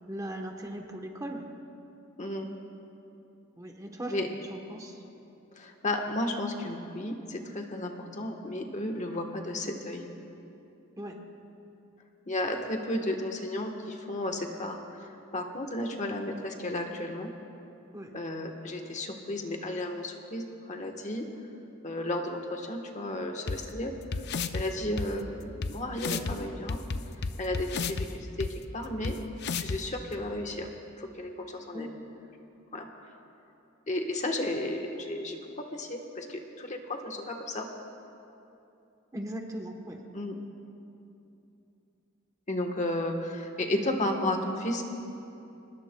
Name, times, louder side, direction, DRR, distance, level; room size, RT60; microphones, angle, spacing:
voice 1, 0.1-1.5 3.5-4.2 4.5-5.0 11.0-11.2 17.9-18.2 31.7-31.9 39.1-40.0, right 1 dB, 15° right, 3 dB, 1.0 m, -38 dB
voice 2, 5.5-10.0 12.3-14.8 15.3-17.3 18.1-21.2 21.8-23.9 24.5-26.8 27.4-29.2 29.6-30.7 31.0-31.9 32.7-33.1 33.9-37.7 40.1-40.3 42.5-44.8, left 1 dB, 35° left, 3 dB, 1.2 m, -33 dB
sound 1, 23.5-23.6 24.1-24.6 25.0-25.1 25.6-25.7 26.0-26.3 26.7-28.1 28.4-28.5 29.0-29.1 29.4-29.8, left 4 dB, 55° left, 0.5 m, -31 dB
24.0 x 20.0 x 2.2 m, 2.8 s
head